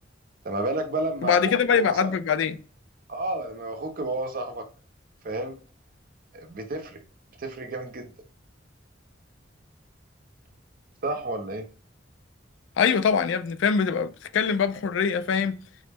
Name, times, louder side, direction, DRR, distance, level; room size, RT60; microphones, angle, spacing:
voice 1, 0.4-1.3 1.7-2.0 3.1-4.6 5.2-5.6 6.3-7.0 7.4-8.1 11.0-11.7, right 2 dB, 50° right, 0.6 m, -31 dB
voice 2, 1.2-2.6 12.8-15.6, left 6 dB, 80° left, 0.3 m, -23 dB
3.8 x 2.1 x 3.3 m
head